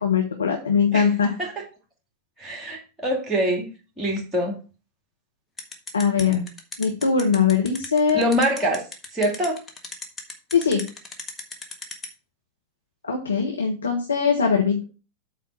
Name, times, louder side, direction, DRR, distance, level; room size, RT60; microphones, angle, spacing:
voice 1, 0.0-1.3 5.9-6.4 6.8-8.2 10.5-10.9 13.0-14.8, left 6 dB, 75° left, 2 dB, 1.3 m, -21 dB
voice 2, 2.4-3.7 4.0-4.6 8.1-8.8 9.1-9.6, equal, 10° right, 1 dB, 2.7 m, -24 dB
sound 1, 5.6-12.1, left 4 dB, 15° left, 1.6 m, -35 dB
8.6 x 3.9 x 6.4 m, 0.33 s
figure-of-eight pair, 90°, 0 cm